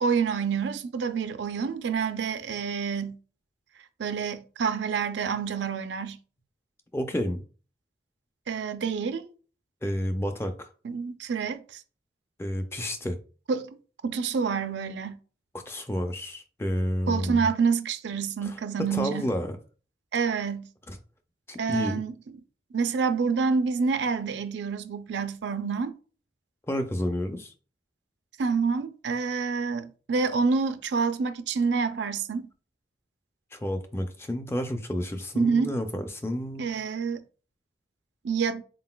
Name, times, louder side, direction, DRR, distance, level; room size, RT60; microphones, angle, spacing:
voice 1, 0.0-3.2 4.0-6.2 8.5-9.3 10.8-11.8 13.5-13.7 14.0-15.2 17.1-19.2 20.1-20.7 21.6-22.1 22.7-25.9 28.4-32.5 35.4-35.7 36.6-37.2 38.2-38.6, right 5 dB, 80° right, 0.4 m, -27 dB
voice 2, 6.9-7.4 9.8-10.7 12.4-13.2 15.7-17.5 18.4-18.6 18.9-19.5 20.9-21.0 21.5-22.0 26.7-27.5 33.5-36.7, equal, 15° left, 0.3 m, -30 dB
3.9 x 3.8 x 2.3 m
head